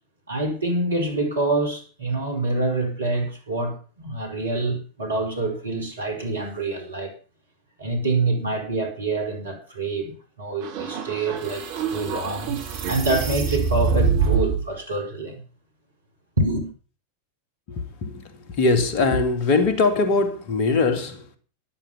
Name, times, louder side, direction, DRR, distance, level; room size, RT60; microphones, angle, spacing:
voice 1, 0.3-7.1 7.8-12.6 12.9-15.4 16.4-16.7, right 2 dB, 75° right, 4.9 m, -26 dB
sound 1, 10.6-14.6, right 6 dB, 50° right, 3.1 m, -25 dB
voice 2, 17.7-21.4, left 3 dB, 40° left, 2.5 m, -22 dB
13.0 x 11.5 x 6.0 m
figure-of-eight pair, 90°, 0 cm